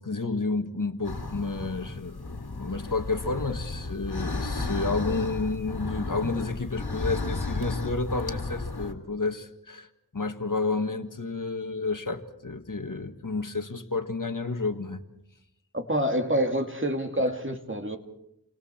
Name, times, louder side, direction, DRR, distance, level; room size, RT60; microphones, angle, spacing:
voice 1, 0.0-15.0, left 3 dB, 55° left, 7 dB, 1.8 m, -31 dB
sound 1, 1.0-8.9, left 2 dB, 75° left, 2.5 m, -33 dB
voice 2, 15.7-18.0, equal, 30° right, 5 dB, 2.3 m, -27 dB
29.5 x 25.5 x 4.4 m, 0.80 s
wide cardioid pair, 50°, 38 cm